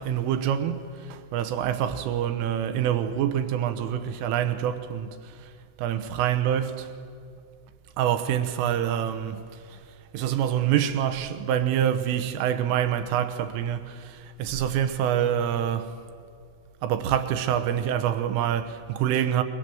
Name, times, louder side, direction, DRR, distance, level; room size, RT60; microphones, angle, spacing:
voice 1, 0.0-5.3 5.8-6.9 8.0-9.4 10.1-16.0 16.8-19.4, right 10 dB, 80° right, 3.6 m, -26 dB
27.5 x 23.0 x 7.8 m
omnidirectional pair, 5.8 m